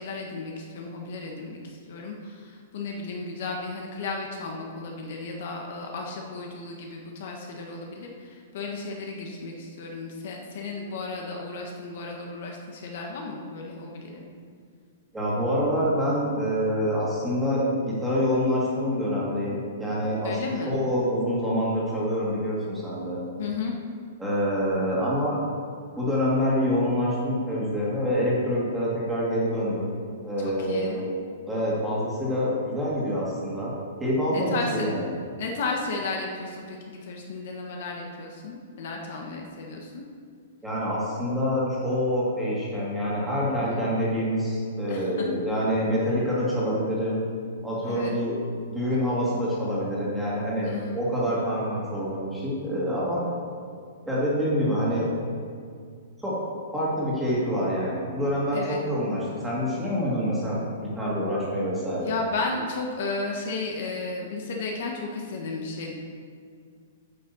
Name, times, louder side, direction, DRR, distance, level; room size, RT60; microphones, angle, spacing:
voice 1, 0.0-1.6 1.9-14.2 20.2-20.8 23.4-23.7 30.4-31.0 34.3-34.8 35.4-40.0 43.6-43.8 44.9-45.3 47.8-48.1 50.6-51.0 58.5-58.8 62.0-65.9, left 3 dB, 45° left, 1 dB, 1.4 m, -34 dB
voice 2, 15.1-20.4 20.7-23.2 24.2-25.4 26.0-29.9 30.2-31.1 31.5-33.7 34.0-35.1 40.6-47.2 47.6-48.4 48.7-53.2 54.1-55.1 56.2-56.4 56.7-62.1, equal, 5° right, -7 dB, 2.4 m, -26 dB
9.5 x 6.5 x 7.1 m, 2.1 s
hypercardioid pair, 175°, 0 cm